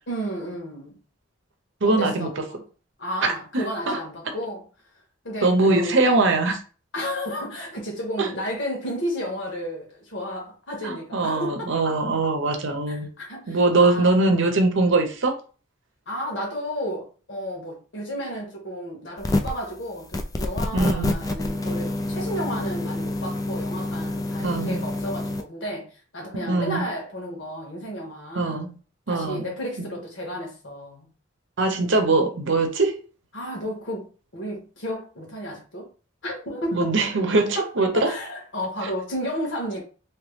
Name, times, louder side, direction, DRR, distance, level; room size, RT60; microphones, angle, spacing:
voice 1, 0.1-1.0 1.8-2.6 3.0-4.7 5.2-6.2 6.9-11.7 12.9-14.2 16.1-28.6 29.1-31.1 33.3-35.9 36.2-37.0 37.5-39.8, equal, 65° left, 1.5 m, -32 dB
voice 2, 1.8-2.3 3.2-4.0 4.3-4.4 5.4-6.6 8.2-8.3 10.8-13.1 13.5-15.4 20.7-21.2 24.4-24.9 26.3-26.8 28.4-28.7 29.1-29.5 31.6-33.0 36.7-38.1, right 3 dB, 65° right, 0.8 m, -22 dB
sound 1, 19.2-19.6 20.1-25.4, left 2 dB, 15° left, 0.3 m, -27 dB
3.1 x 3.0 x 3.2 m
head